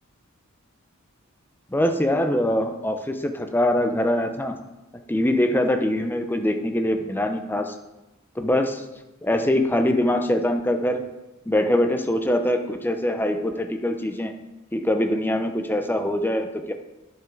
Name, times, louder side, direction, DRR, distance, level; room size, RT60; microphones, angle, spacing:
voice 1, 1.7-4.6 5.1-7.7 8.4-8.8 9.2-11.0 11.5-14.3 14.7-16.7, left 1 dB, 10° left, 6 dB, 0.6 m, -23 dB
10.5 x 5.8 x 3.8 m, 1.0 s
head